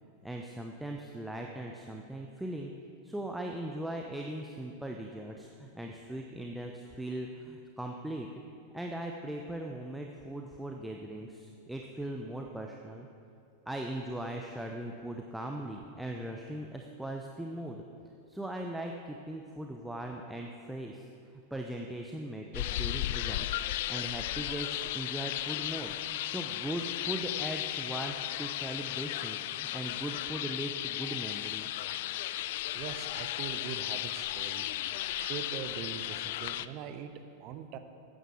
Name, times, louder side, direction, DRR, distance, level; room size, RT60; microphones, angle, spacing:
voice 1, 0.2-2.7 3.0-8.4 8.7-13.1 13.7-17.8 18.3-21.1 21.5-23.6 23.9-31.8, right 1 dB, 5° right, 1 dB, 0.7 m, -39 dB
sound 1, 22.5-36.7, left 14 dB, 50° left, 0.3 m, -35 dB
voice 2, 32.7-34.7 35.1-37.8, right 8 dB, 40° right, 9 dB, 0.8 m, -42 dB
14.5 x 9.0 x 4.9 m, 2.7 s
figure-of-eight pair, 90°, 0 cm